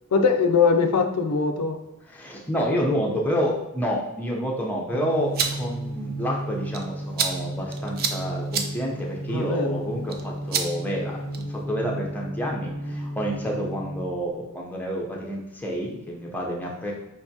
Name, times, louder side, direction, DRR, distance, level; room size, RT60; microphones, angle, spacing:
voice 1, 0.1-1.8 9.3-9.8, left 5 dB, 85° left, 5 dB, 0.4 m, -21 dB
voice 2, 2.1-16.9, equal, 5° left, -2 dB, 0.6 m, -29 dB
sound 1, 4.9-14.3, right 1 dB, 60° right, 1.3 m, -33 dB
sound 2, 5.1-11.6, right 6 dB, 40° right, 0.4 m, -33 dB
5.1 x 3.4 x 2.8 m, 0.98 s
head